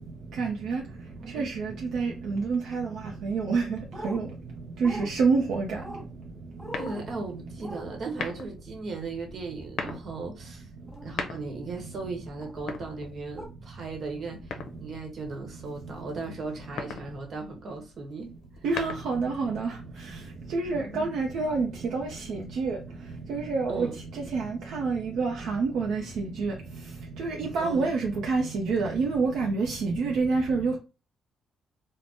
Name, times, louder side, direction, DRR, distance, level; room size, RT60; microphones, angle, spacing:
voice 1, 0.4-0.8 1.3-2.9 3.2-3.8 4.0-4.2 4.8-5.8 18.6-19.7 20.5-22.8 23.3-23.9 24.3-26.5 27.2-30.8, right 4 dB, 75° right, 0.5 m, -27 dB
sound 1, 3.9-4.2 4.8-5.1 5.8-6.1 6.6-7.0 7.6-7.8 9.8-10.0 10.9-11.1 12.4-12.6 13.4-13.5, right 1 dB, 15° right, 0.9 m, -40 dB
sound 2, 6.7-7.3 8.1-8.6 9.6-10.1 10.9-11.7 12.5-13.5 14.5-15.1 16.6-17.1 18.4-19.3, left 5 dB, 70° left, 0.5 m, -37 dB
voice 2, 6.8-10.7 11.0-18.3 20.7-21.1 23.7-23.9 27.6-27.9, right 3 dB, 55° right, 1.0 m, -37 dB
3.4 x 2.1 x 2.6 m
cardioid pair, 90°, 0 cm